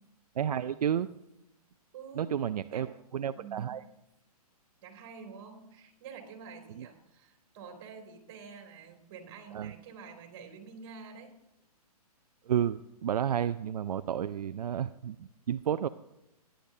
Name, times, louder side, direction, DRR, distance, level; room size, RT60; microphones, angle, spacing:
voice 1, 0.4-1.1 2.1-3.8 6.7-6.9 9.5-9.7 12.4-15.9, right 9 dB, 75° right, 11 dB, 0.4 m, -31 dB
voice 2, 1.9-2.3 2.7-2.9 3.3-3.8 4.8-11.3, right 6 dB, 40° right, 3 dB, 2.9 m, -48 dB
17.5 x 10.0 x 2.8 m, 0.88 s
hypercardioid pair, 145°, 20 cm